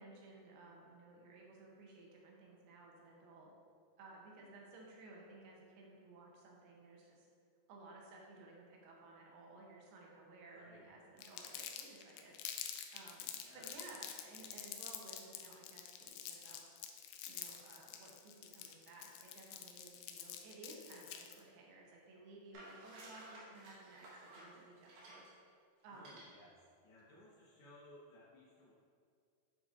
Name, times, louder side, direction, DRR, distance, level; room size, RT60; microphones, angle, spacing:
voice 1, 0.0-3.5 4.0-7.3 7.7-12.3 12.9-16.6 17.3-25.3 25.8-26.2, right 2 dB, 85° right, -2 dB, 2.9 m, -57 dB
voice 2, 10.5-10.8 13.3-13.8 25.8-26.6 26.8-28.7, left 1 dB, 65° left, -9 dB, 1.3 m, -60 dB
Crumpling crinkling, 11.2-21.4, left 9 dB, 85° left, 2.5 m, -47 dB
sound 1, 22.5-25.3 25.9-26.2, right 1 dB, 65° right, 3.0 m, -56 dB
9.4 x 5.1 x 2.5 m, 2.2 s
omnidirectional pair, 4.5 m